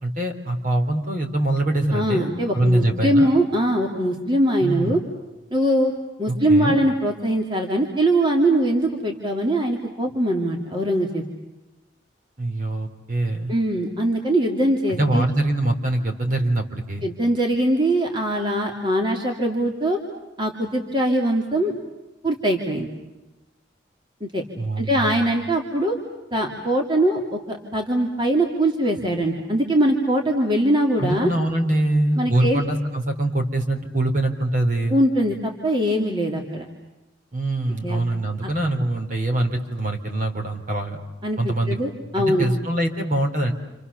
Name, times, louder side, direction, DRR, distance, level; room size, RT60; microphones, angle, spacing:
voice 1, 0.0-3.3 4.6-5.0 6.3-6.8 12.4-13.5 14.9-17.1 24.6-25.2 31.0-35.0 37.3-41.0 41.4-41.8 42.1-43.5, right 1 dB, 45° right, 3 dB, 3.7 m, -23 dB
voice 2, 1.9-5.0 5.5-5.9 6.2-11.2 13.5-15.2 17.0-20.0 20.4-21.7 22.2-22.9 24.2-24.4 24.8-26.0 26.3-31.3 32.2-32.6 34.9-36.6 37.8-38.0 38.4-38.5 41.2-42.5, right 1 dB, 25° right, 1 dB, 2.7 m, -22 dB
29.0 x 28.0 x 7.0 m, 1.0 s
head